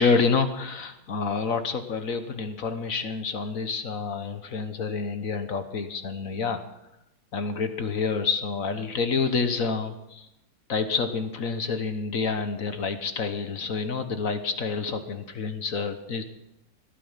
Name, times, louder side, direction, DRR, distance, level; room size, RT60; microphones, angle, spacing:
voice 1, 0.0-6.6 7.3-10.3 10.7-16.2, left 4 dB, 50° left, 9 dB, 1.4 m, -28 dB
18.0 x 12.5 x 5.7 m, 0.86 s
omnidirectional pair, 2.0 m